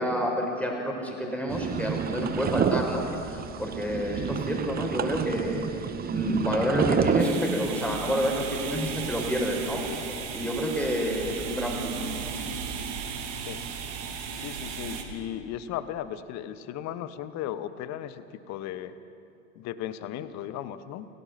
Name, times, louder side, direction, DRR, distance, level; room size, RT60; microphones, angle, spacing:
voice 1, 0.0-5.6 6.1-9.8 10.3-12.0, equal, 5° left, 0 dB, 5.0 m, -28 dB
sound 1, 1.5-7.3, right 8 dB, 25° right, 1.0 m, -29 dB
sound 2, 7.2-15.0, right 6 dB, 60° right, 2.7 m, -35 dB
voice 2, 14.3-18.9 19.5-21.1, left 11 dB, 40° left, 14 dB, 1.2 m, -36 dB
29.0 x 17.0 x 5.9 m, 2.6 s
hypercardioid pair, 85°, 40 cm